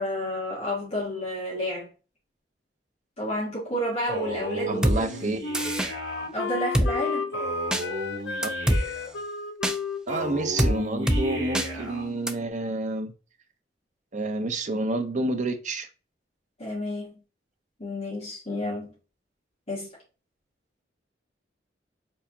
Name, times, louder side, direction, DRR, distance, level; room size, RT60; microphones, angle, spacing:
voice 1, 0.0-1.9 3.2-4.8 5.2-5.4 6.3-7.3 16.6-17.2 17.8-18.9 19.7-19.9, equal, 35° left, 2.0 m, -30 dB
Male speech man speaking, 4.1-6.3 7.3-9.1 10.1-12.1, right 1 dB, 65° right, 2.0 m, -35 dB
voice 2, 4.7-5.4 8.4-8.5 10.1-13.1 14.1-15.9, right 2 dB, 45° right, 0.6 m, -29 dB
Drum kit, 4.8-5.0 5.5-5.9 6.7-6.9 7.7-7.8 8.4-8.8 9.6-9.8 10.6-10.7 11.1-11.2 11.5-11.7 12.3-12.4, equal, 5° right, 0.4 m, -22 dB
Wind instrument woodwind instrument, 4.9-12.4, left 4 dB, 75° left, 0.6 m, -34 dB
4.6 x 3.5 x 2.7 m
head